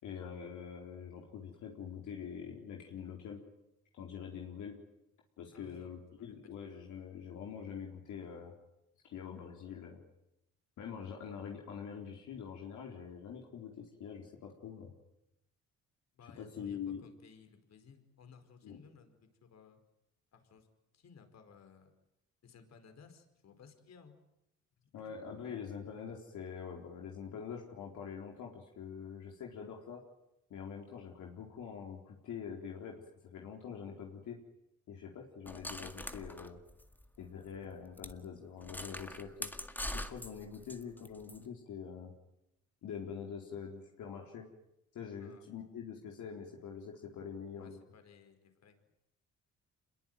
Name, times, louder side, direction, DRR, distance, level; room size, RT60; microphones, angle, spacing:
voice 1, 0.0-3.4 3.9-4.8 5.4-8.5 9.0-10.0 10.8-14.9 16.4-17.0 18.6-18.8 24.9-30.0 30.5-34.4 34.9-36.6 37.2-39.5 39.9-42.1 42.8-44.5 44.9-47.8, left 7 dB, 75° left, 0 dB, 4.2 m, -45 dB
voice 2, 5.5-5.9 6.2-6.6 16.1-19.8 20.3-20.7 20.9-21.9 22.4-24.2 25.0-25.1 45.2-45.5 47.5-48.8, left 6 dB, 60° left, 7 dB, 5.0 m, -59 dB
sound 1, 35.5-37.3 37.5-37.6 38.0-38.2 38.6-41.4, left 1 dB, 5° left, 2.0 m, -43 dB
27.0 x 22.0 x 9.4 m, 0.86 s
cardioid pair, 90°, 30 cm